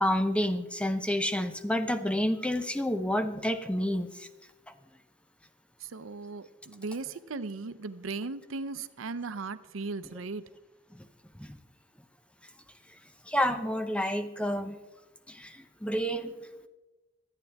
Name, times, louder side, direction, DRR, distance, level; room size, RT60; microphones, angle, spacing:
voice 1, 0.0-4.3 11.4-11.6 13.3-14.8 15.3-16.3, equal, 5° left, 9 dB, 0.7 m, -29 dB
voice 2, 5.8-10.4, right 3 dB, 90° right, 14 dB, 0.6 m, -37 dB
24.0 x 9.1 x 3.5 m, 1.1 s
head